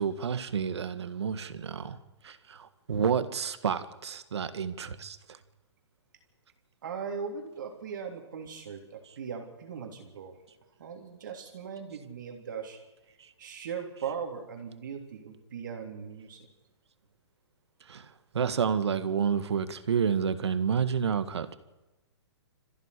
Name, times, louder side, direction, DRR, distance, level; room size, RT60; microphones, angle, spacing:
voice 1, 0.0-2.0 2.2-5.2 14.0-14.1 17.9-18.1 18.3-21.6, right 7 dB, 70° right, 1.8 m, -29 dB
voice 2, 6.8-10.4 10.8-12.8 13.4-16.5, right 6 dB, 45° right, 3.3 m, -39 dB
27.0 x 15.0 x 8.4 m
hypercardioid pair, 180°, 15 cm